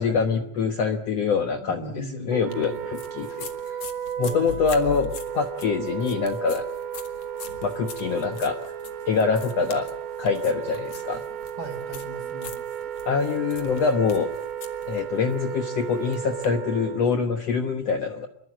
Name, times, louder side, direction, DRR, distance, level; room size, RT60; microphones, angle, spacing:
voice 1, 0.0-3.8 4.2-6.6 7.6-8.6 9.1-9.9 10.2-11.2 13.0-14.3 14.9-18.3, left 5 dB, 85° left, 6 dB, 1.4 m, -25 dB
voice 2, 1.6-2.9 4.3-4.6 11.6-12.6, right 2 dB, 35° right, 7 dB, 4.4 m, -38 dB
Wind instrument woodwind instrument, 2.3-17.2, right 9 dB, 80° right, 3.3 m, -34 dB
sound 1, 2.5-16.5, left 8 dB, 45° left, 2.5 m, -43 dB
26.0 x 22.5 x 7.4 m, 0.67 s
omnidirectional pair, 4.8 m